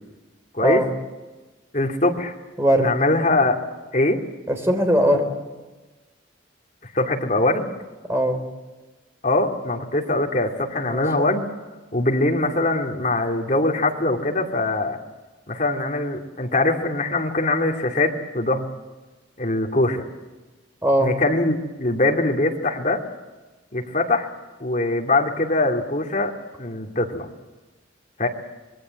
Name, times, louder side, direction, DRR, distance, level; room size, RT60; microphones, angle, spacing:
voice 1, 1.7-2.3 2.7-3.6 3.9-4.2 6.9-7.7 9.2-11.4 11.9-15.0 15.5-18.7 19.4-20.1 21.0-23.0 23.7-24.3 24.6-26.3 26.6-27.3 28.2-28.3, left 2 dB, 40° left, 1 dB, 2.6 m, -22 dB
voice 2, 2.6-2.9 4.5-5.3 8.1-8.4 10.8-11.0 20.8-21.1, equal, 15° right, 4 dB, 3.8 m, -19 dB
26.5 x 21.0 x 7.8 m, 1.2 s
head